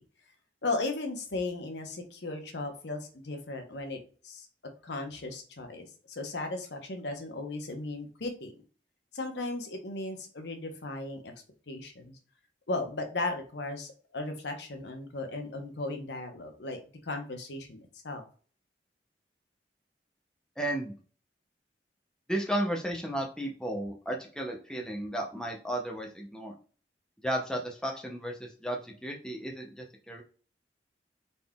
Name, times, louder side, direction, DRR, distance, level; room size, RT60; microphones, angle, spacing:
voice 1, 0.6-4.0 4.2-4.5 4.8-8.5 9.1-11.3 11.7-12.2 12.7-17.8 18.0-18.2, left 2 dB, 70° left, 5 dB, 0.9 m, -36 dB
voice 2, 20.6-20.9 22.3-26.5 27.2-30.2, right 1 dB, 5° left, 1 dB, 0.5 m, -34 dB
4.0 x 3.5 x 2.3 m, 0.41 s
head